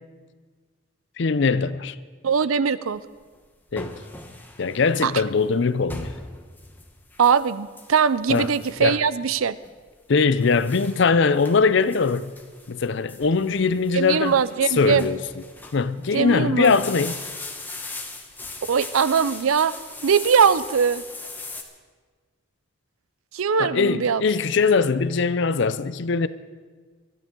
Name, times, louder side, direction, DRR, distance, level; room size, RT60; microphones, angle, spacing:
voice 1, 1.2-2.0 3.7-3.9 4.6-6.1 8.3-8.5 8.8-9.0 10.1-12.3 12.7-14.4 14.8-15.2 15.7-17.1 23.6-26.3, left 4 dB, 60° left, 0.5 m, -21 dB
voice 2, 2.2-3.0 5.0-5.1 7.2-9.6 13.9-15.1 16.1-16.7 18.7-19.7 20.0-21.0 23.3-24.2, right 6 dB, 80° right, 0.5 m, -21 dB
sound 1, 3.0-21.6, left 2 dB, 10° left, 1.0 m, -40 dB
23.0 x 12.5 x 3.8 m
head